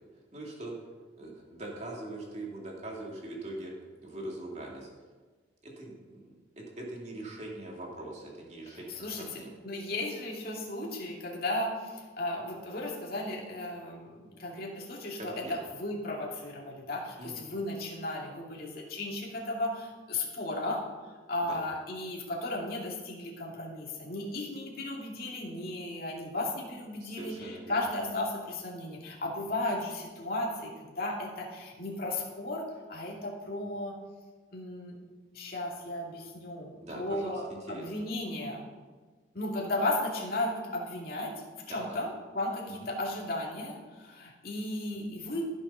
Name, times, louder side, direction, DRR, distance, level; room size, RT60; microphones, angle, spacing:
voice 1, 0.3-0.7 1.2-3.7 4.0-4.9 5.6-9.5 15.2-15.6 17.2-17.5 21.4-21.6 27.0-27.8 36.8-37.9 41.7-42.0, right 1 dB, 35° right, -2 dB, 2.5 m, -42 dB
voice 2, 8.7-20.9 21.3-34.0 34.5-35.0 35.3-38.6 39.3-45.5, left 1 dB, 50° left, -3 dB, 2.4 m, -35 dB
14.5 x 7.1 x 5.5 m, 1.4 s
head